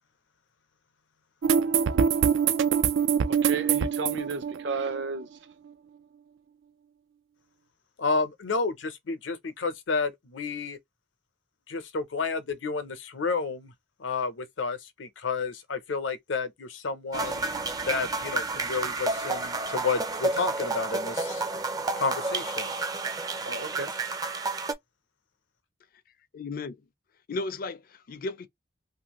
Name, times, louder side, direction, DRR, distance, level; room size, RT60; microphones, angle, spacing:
sound 1, 1.4-5.2, right 7 dB, 85° right, 0.4 m, -24 dB
voice 1, 3.3-5.3 23.4-24.3, right 4 dB, 70° right, 0.8 m, -33 dB
voice 2, 8.0-10.8 11.7-13.7 14.0-17.4 17.9-21.4 22.0-22.7, left 4 dB, 90° left, 0.7 m, -31 dB
sound 2, 17.1-24.7, right 3 dB, 20° right, 0.4 m, -30 dB
voice 3, 26.3-26.8 27.3-28.5, left 3 dB, 50° left, 0.4 m, -34 dB
2.5 x 2.5 x 2.9 m
head